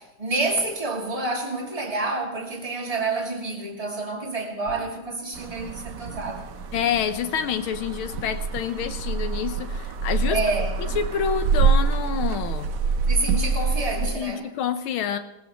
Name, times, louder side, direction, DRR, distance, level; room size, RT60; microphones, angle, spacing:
voice 1, 0.0-6.4 10.3-10.8 13.1-14.5, right 3 dB, 15° right, 2.3 m, -28 dB
sound 1, 4.7-6.3 6.6-7.3 7.5-8.5 8.8-10.6 10.9-13.0, equal, 50° left, 6.4 m, -45 dB
sound 2, 5.3-14.2, right 5 dB, 60° right, 1.0 m, -26 dB
voice 2, 6.7-10.4 11.0-12.7 14.0-15.2, left 8 dB, 80° left, 1.8 m, -27 dB
20.0 x 19.0 x 3.1 m
omnidirectional pair, 2.3 m